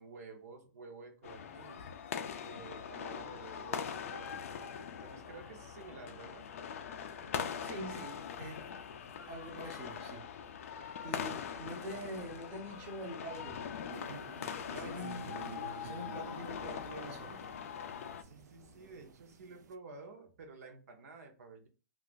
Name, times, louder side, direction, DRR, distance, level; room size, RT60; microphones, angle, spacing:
voice 1, 0.0-1.9 2.4-4.5 5.0-6.5 14.7-15.1 18.2-21.7, right 4 dB, 60° right, 0.7 m, -51 dB
sound 1, 1.2-18.2, left 7 dB, 50° left, 0.4 m, -42 dB
sound 2, 2.7-19.1, left 5 dB, 30° left, 0.8 m, -59 dB
voice 2, 7.6-8.7 9.3-10.3 10.6-10.8 11.0-13.7 14.7-15.2 15.8-17.4, equal, 20° right, 0.6 m, -45 dB
sound 3, 13.9-19.7, right 6 dB, 85° right, 0.4 m, -51 dB
2.4 x 2.4 x 3.7 m
hypercardioid pair, 170°, 9 cm